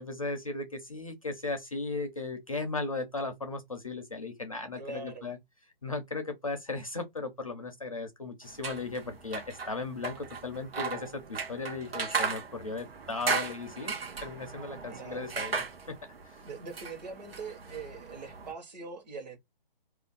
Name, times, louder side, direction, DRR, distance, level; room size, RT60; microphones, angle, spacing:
voice 1, 0.0-5.4 5.8-13.9 14.2-16.0 16.3-16.4, left 3 dB, 35° left, 0.4 m, -36 dB
voice 2, 4.8-5.3 14.9-15.3 16.4-19.4, right 4 dB, 45° right, 1.0 m, -42 dB
sound 1, 8.5-18.5, right 5 dB, 85° right, 0.9 m, -37 dB
2.5 x 2.1 x 3.7 m
hypercardioid pair, 170°, 29 cm